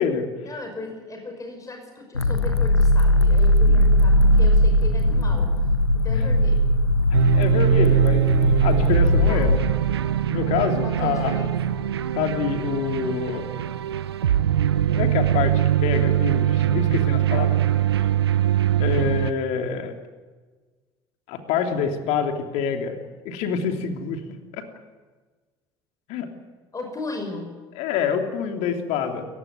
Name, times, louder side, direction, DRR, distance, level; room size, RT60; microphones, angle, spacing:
voice 1, 0.4-5.5 6.0-6.7 7.8-8.1 9.3-9.5 10.8-11.8 26.7-27.5, left 3 dB, 25° left, 3 dB, 5.8 m, -36 dB
sound 1, 2.1-9.6, left 1 dB, 85° left, 1.4 m, -19 dB
voice 2, 7.0-9.5 10.3-11.3 12.2-13.5 14.9-17.6 18.8-19.9 21.3-24.2 24.5-24.6 26.1-26.3 27.7-29.3, left 7 dB, 55° left, 5 dB, 3.2 m, -26 dB
sound 2, 7.1-19.3, right 12 dB, 75° right, 0.8 m, -22 dB
28.5 x 15.5 x 9.5 m, 1.4 s
figure-of-eight pair, 60°, 13 cm